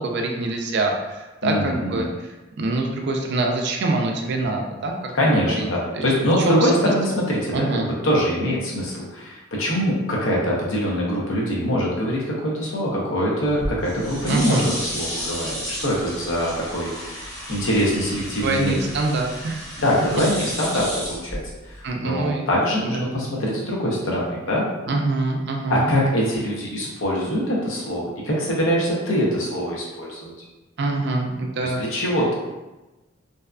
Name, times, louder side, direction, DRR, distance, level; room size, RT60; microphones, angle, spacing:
voice 1, 0.0-2.1 2.6-5.7 5.9-6.1 6.5-6.9 7.5-7.9 14.3-14.7 18.4-19.6 21.8-22.5 22.8-23.1 24.9-25.9 30.8-31.8, right 2 dB, 55° right, 2 dB, 0.4 m, -24 dB
voice 2, 1.4-2.1 5.1-18.7 19.8-21.4 21.7-21.8 22.0-24.6 25.7-30.3 31.6-32.3, equal, 70° left, -4 dB, 0.7 m, -23 dB
sound 1, 13.4-21.9, equal, 20° left, 0.9 m, -33 dB
2.7 x 2.2 x 2.3 m, 1.1 s
head